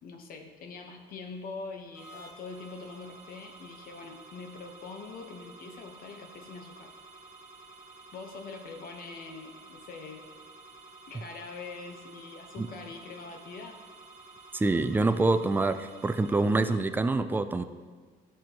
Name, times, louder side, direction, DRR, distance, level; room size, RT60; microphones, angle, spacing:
voice 1, 0.0-6.9 8.1-10.2 11.1-13.8, left 4 dB, 60° left, 4 dB, 1.0 m, -43 dB
sound 1, 1.9-16.8, right 3 dB, 45° right, 1.8 m, -51 dB
voice 2, 14.5-17.6, right 3 dB, 10° right, 10 dB, 0.4 m, -26 dB
11.5 x 6.0 x 2.9 m, 1.5 s
cardioid pair, 110°, 17 cm